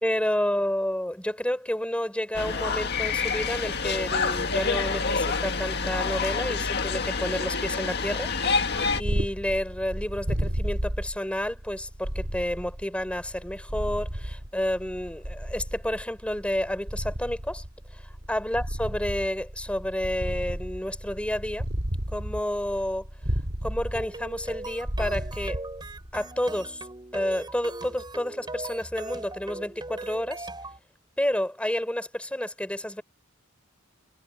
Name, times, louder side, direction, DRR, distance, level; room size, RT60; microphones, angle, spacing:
voice 1, 0.0-8.6 9.0-17.6 17.9-21.7 22.1-23.1 23.6-25.6 26.1-26.9 27.1-30.5 31.2-33.0, left 1 dB, 5° left, 4.2 m, -30 dB
sound 1, 2.3-9.0, left 4 dB, 55° left, 1.8 m, -27 dB
Purr, 8.8-26.3, equal, 55° right, 3.2 m, -33 dB
sound 2, 23.9-30.8, right 2 dB, 20° right, 4.5 m, -39 dB
head